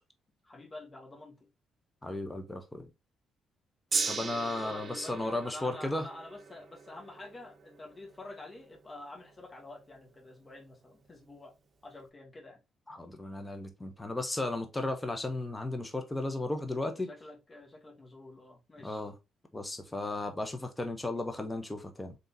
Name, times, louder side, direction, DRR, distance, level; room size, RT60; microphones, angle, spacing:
voice 1, 0.4-1.4 4.5-11.5 11.8-12.6 16.7-19.1, left 2 dB, 30° left, 1.7 m, -48 dB
voice 2, 2.0-2.9 4.1-6.0 12.9-17.1 18.8-19.1 19.5-22.2, left 2 dB, 15° left, 0.7 m, -35 dB
Gong, 3.9-10.3 11.0-11.1, right 5 dB, 45° right, 0.8 m, -39 dB
3.8 x 3.6 x 2.7 m
cardioid pair, 90°, 0 cm